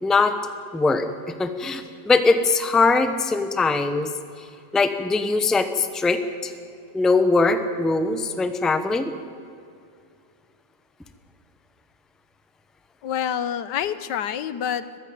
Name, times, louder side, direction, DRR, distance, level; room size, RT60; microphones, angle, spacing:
voice 1, 0.0-0.3 0.7-1.1 1.4-4.1 4.7-6.5 6.9-9.1, left 3 dB, ahead, 9 dB, 0.7 m, -21 dB
voice 2, 13.0-15.0, left 9 dB, 85° left, 14 dB, 1.5 m, -27 dB
21.5 x 15.0 x 8.8 m, 2.4 s
omnidirectional pair, 1.8 m